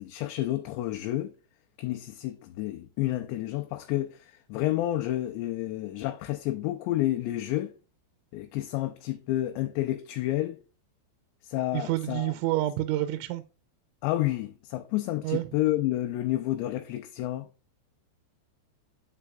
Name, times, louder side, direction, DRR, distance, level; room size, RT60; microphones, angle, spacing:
voice 1, 0.0-1.3 1.8-7.7 8.3-10.6 11.4-12.3 14.0-17.5, left 15 dB, 80° left, 2.8 m, -30 dB
voice 2, 11.7-13.4 15.2-15.4, right 16 dB, 90° right, 3.0 m, -28 dB
8.8 x 8.2 x 2.4 m
omnidirectional pair, 5.3 m